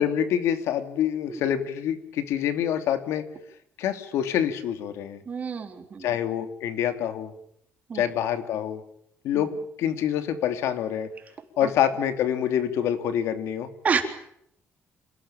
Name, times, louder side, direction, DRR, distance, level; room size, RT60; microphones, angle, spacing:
voice 1, 0.0-3.3 3.8-5.2 6.0-7.3 7.9-8.8 9.2-11.1 11.6-13.7, left 9 dB, 80° left, 9 dB, 2.9 m, -26 dB
voice 2, 5.3-6.1 7.9-8.0 11.6-11.7 13.8-14.0, right 6 dB, 35° right, 5 dB, 3.8 m, -28 dB
27.0 x 18.5 x 9.0 m, 0.74 s
cardioid pair, 145°, 5 cm